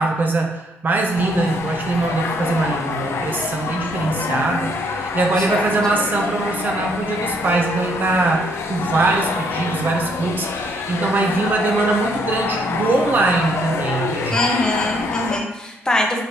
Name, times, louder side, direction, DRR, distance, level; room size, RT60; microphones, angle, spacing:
voice 1, 0.0-14.4, right 3 dB, 45° right, 2 dB, 0.6 m, -22 dB
sound 1, 1.1-15.4, left 4 dB, 75° left, 0.4 m, -26 dB
voice 2, 14.3-16.2, left 1 dB, 15° left, 1 dB, 0.7 m, -23 dB
4.9 x 2.6 x 3.0 m, 0.97 s
cardioid pair, 85°, 5 cm